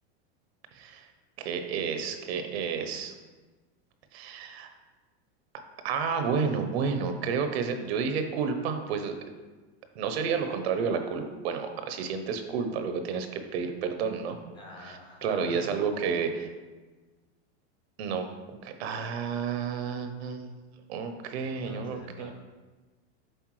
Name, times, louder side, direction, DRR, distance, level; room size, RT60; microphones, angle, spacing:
voice 1, 0.7-1.1 1.4-3.1 4.1-4.7 5.8-9.1 9.9-14.4 14.8-16.5 18.0-20.5 20.9-22.3, right 6 dB, 65° right, 7 dB, 0.8 m, -31 dB
voice 2, 14.5-15.8 21.4-22.3, left 1 dB, 15° left, -1 dB, 0.5 m, -46 dB
7.9 x 4.0 x 3.1 m, 1.3 s
supercardioid pair, 170°, 34 cm